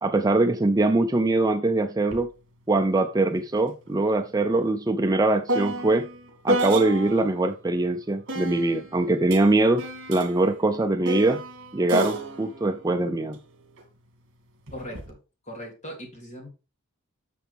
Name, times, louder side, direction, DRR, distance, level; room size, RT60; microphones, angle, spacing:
voice 1, 0.0-2.3 2.7-6.1 6.4-11.4 11.7-13.4, right 2 dB, 15° right, 0.4 m, -22 dB
sound 1, 2.1-2.3 2.6-7.4 8.3-13.8 14.7-15.1, right 1 dB, 55° right, 2.6 m, -32 dB
voice 2, 14.7-15.2 15.4-16.5, equal, 30° left, 2.8 m, -39 dB
10.0 x 6.9 x 3.5 m
head